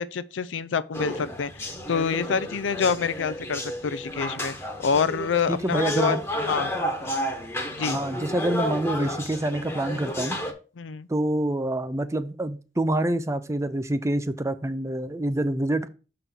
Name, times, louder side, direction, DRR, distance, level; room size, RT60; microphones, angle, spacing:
voice 1, 0.0-4.5 4.8-6.2 6.5-6.7 7.7-8.0 10.8-11.1, left 6 dB, 85° left, 0.5 m, -27 dB
sound 1, 0.9-10.5, equal, 15° left, 1.1 m, -31 dB
voice 2, 5.5-6.2 7.8-10.4 11.1-15.9, right 1 dB, 15° right, 0.5 m, -26 dB
6.7 x 3.8 x 6.0 m
head